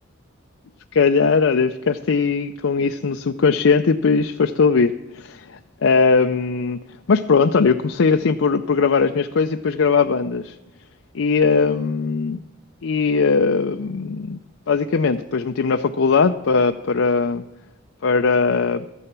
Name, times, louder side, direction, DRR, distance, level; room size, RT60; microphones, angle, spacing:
voice 1, 0.9-6.8 7.1-10.5 11.1-12.4 12.8-14.4 14.7-17.4 18.0-18.8, left 5 dB, 80° left, 6 dB, 0.5 m, -19 dB
14.0 x 9.9 x 5.9 m, 1.0 s
head